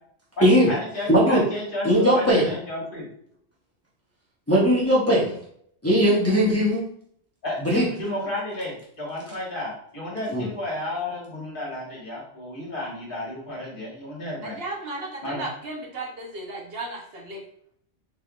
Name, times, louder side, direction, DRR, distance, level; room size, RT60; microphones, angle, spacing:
voice 1, 0.4-3.1 7.4-14.6 15.2-15.5, left 1 dB, 50° left, -4 dB, 1.5 m, -32 dB
voice 2, 1.1-1.4 1.8-2.5 4.5-5.2 5.8-6.8 7.6-7.9 10.3-10.4, equal, 15° left, -6 dB, 0.8 m, -19 dB
voice 3, 14.4-17.4, right 2 dB, 60° right, -2 dB, 1.0 m, -35 dB
4.0 x 3.4 x 2.3 m, 0.66 s
omnidirectional pair, 1.2 m